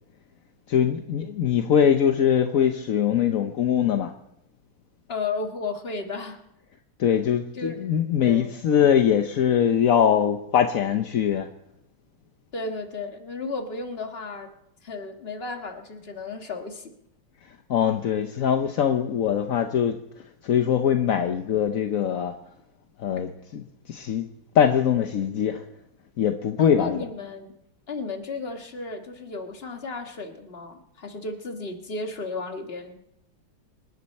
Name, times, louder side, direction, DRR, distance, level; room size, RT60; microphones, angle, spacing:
voice 1, 0.7-4.1 7.0-11.5 17.7-20.0 20.4-22.3 23.0-24.3 24.5-25.6 26.2-27.0, left 8 dB, 60° left, 6 dB, 0.9 m, -22 dB
voice 2, 5.1-6.4 7.5-7.8 8.2-8.6 12.5-14.5 14.8-16.9 26.6-27.5 27.9-33.0, left 3 dB, 30° left, 4 dB, 1.7 m, -33 dB
26.5 x 11.0 x 4.3 m, 0.83 s
omnidirectional pair, 2.3 m